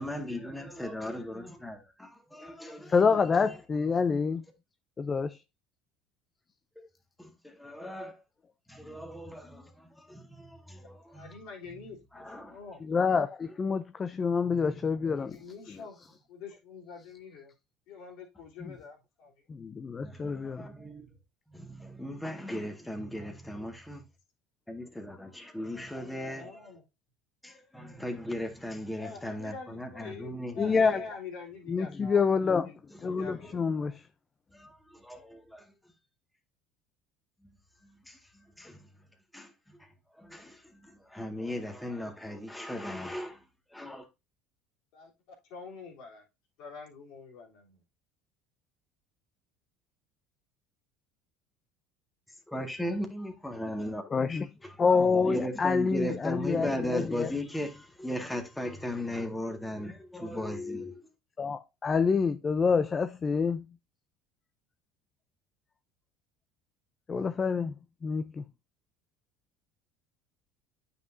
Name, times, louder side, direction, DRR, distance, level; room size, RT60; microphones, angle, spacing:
voice 1, 0.0-3.0 6.8-6.9 7.2-8.2 8.7-11.4 12.1-12.6 14.3-14.9 20.0-21.1 21.5-24.0 24.7-26.6 27.4-30.7 32.9-33.0 33.4-33.5 34.5-35.7 37.4-37.6 37.8-38.9 39.3-39.9 40.1-43.4 43.7-44.1 52.5-54.0 54.6-61.1, left 1 dB, 5° left, 1.8 m, -38 dB
voice 2, 2.9-4.4 5.0-5.4 12.8-15.4 15.7-16.1 18.6-18.8 19.5-20.7 30.6-31.0 31.7-32.7 33.0-34.0 54.1-54.5 54.8-57.3 61.4-63.7 67.1-67.7 68.0-68.4, left 5 dB, 30° left, 0.6 m, -27 dB
voice 3, 11.1-12.8 15.1-16.0 16.3-17.5 17.9-19.4 26.2-26.8 28.9-32.3 32.6-32.8 33.0-34.0 44.9-46.2 46.6-47.8, left 5 dB, 65° left, 3.2 m, -46 dB
9.2 x 5.5 x 2.7 m
hypercardioid pair, 75°, 0 cm